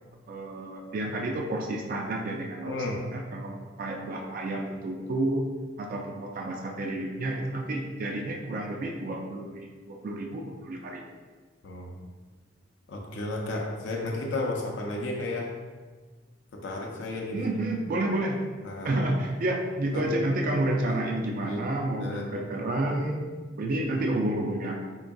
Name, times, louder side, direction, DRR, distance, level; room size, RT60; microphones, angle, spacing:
voice 1, 0.3-2.8 3.1-5.4 5.8-11.0 17.3-18.4 18.8-23.2 23.6-24.8, right 1 dB, 45° right, 1 dB, 0.3 m, -30 dB
voice 2, 2.6-3.0 11.6-11.9 12.9-15.5 16.5-17.5 18.6-18.9 19.9-20.1 21.4-21.6 22.0-22.3, left 2 dB, 70° left, -1 dB, 0.5 m, -33 dB
3.8 x 3.5 x 2.3 m, 1.4 s
head